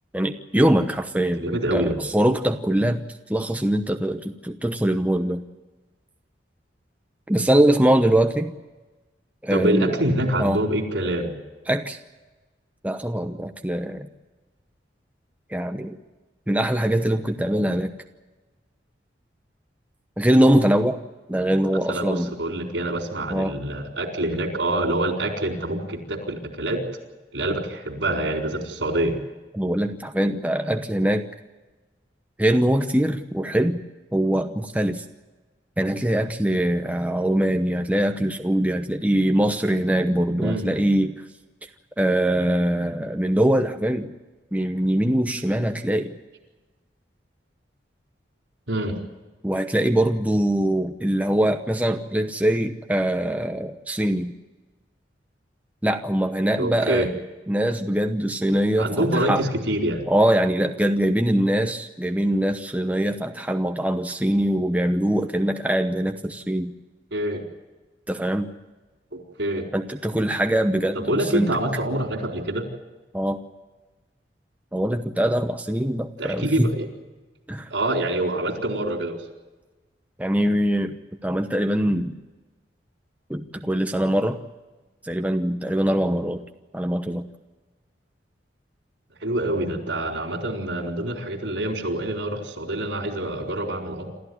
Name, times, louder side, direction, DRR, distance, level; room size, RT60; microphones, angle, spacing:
voice 1, 0.1-3.0 3.3-5.4 7.3-8.5 9.4-10.0 10.4-10.6 11.7-12.0 12.8-14.1 15.5-16.0 16.5-17.9 20.2-21.0 21.3-22.3 23.3-23.6 29.5-31.2 32.4-33.8 34.1-35.0 35.8-41.1 42.0-44.1 44.5-46.1 49.4-54.3 55.8-57.1 57.5-59.4 60.1-66.7 68.1-68.5 69.7-71.5 73.1-73.4 74.7-76.7 77.5-77.7 80.2-81.0 81.2-82.2 83.3-84.4 85.0-86.4 86.7-87.3, right 1 dB, 10° right, 5 dB, 0.9 m, -22 dB
voice 2, 1.4-2.0 9.5-11.3 21.9-26.8 27.3-29.1 40.4-40.7 48.7-49.0 56.6-57.1 58.8-60.0 67.1-67.4 69.1-69.7 70.9-72.6 76.2-76.9 77.7-79.2 89.2-94.1, right 1 dB, 75° right, 4 dB, 4.3 m, -26 dB
28.0 x 13.5 x 9.4 m, 1.2 s
head